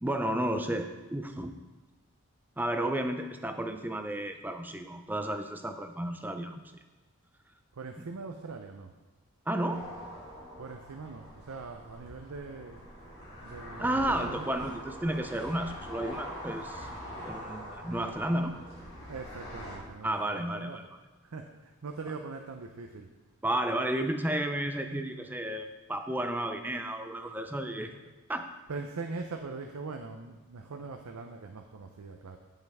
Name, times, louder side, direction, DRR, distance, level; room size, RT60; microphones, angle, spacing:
voice 1, 0.0-1.5 2.6-6.6 9.5-9.8 13.8-16.9 17.3-18.5 20.0-20.8 23.4-28.0 28.3-28.5, right 1 dB, 10° right, 6 dB, 0.5 m, -32 dB
voice 2, 7.7-8.9 10.6-12.9 13.4-14.5 19.1-20.8 21.2-23.1 27.8-28.0 28.7-32.4, right 4 dB, 85° right, 4 dB, 0.6 m, -42 dB
sound 1, 9.7-19.8, equal, 30° left, 3.0 m, -44 dB
15.0 x 5.6 x 3.5 m, 1.2 s
head